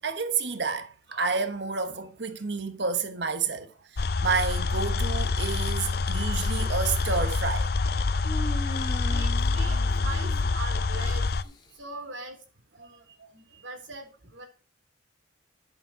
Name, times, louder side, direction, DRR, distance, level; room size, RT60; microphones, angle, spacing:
voice 1, 0.0-7.7 12.8-12.9 13.2-13.3, right 5 dB, 65° right, 1.2 m, -30 dB
sound 1, 4.0-11.4, left 3 dB, 55° left, 0.6 m, -26 dB
Human voice, 6.1-7.1 8.2-11.0, left 1 dB, 25° left, 1.9 m, -40 dB
voice 2, 9.1-12.4 12.8-13.0 13.3-14.5, right 3 dB, 90° right, 3.8 m, -41 dB
11.0 x 7.4 x 5.8 m
head